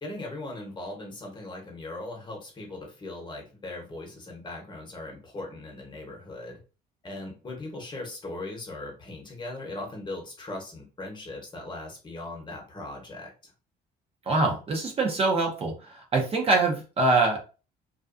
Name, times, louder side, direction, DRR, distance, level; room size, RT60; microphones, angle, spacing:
voice 1, 0.0-6.6 7.0-13.5, left 2 dB, 25° left, 1 dB, 0.9 m, -39 dB
voice 2, 14.3-15.7 16.1-17.4, right 3 dB, 35° right, 1 dB, 0.6 m, -24 dB
2.4 x 2.2 x 2.5 m, 0.33 s
cardioid pair, 110°, 17 cm